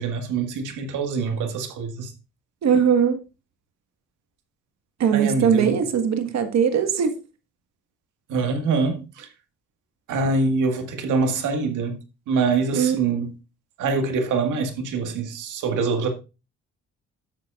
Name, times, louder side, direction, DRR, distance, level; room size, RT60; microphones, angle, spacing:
voice 1, 0.0-2.1 5.1-5.8 8.3-9.3 10.1-12.0 12.3-13.3 13.8-16.1, right 4 dB, 85° right, 1.8 m, -24 dB
voice 2, 2.6-3.2 5.0-7.1 12.7-13.0, right 7 dB, 60° right, 1.5 m, -20 dB
11.5 x 7.8 x 2.4 m
cardioid pair, 90°, 30 cm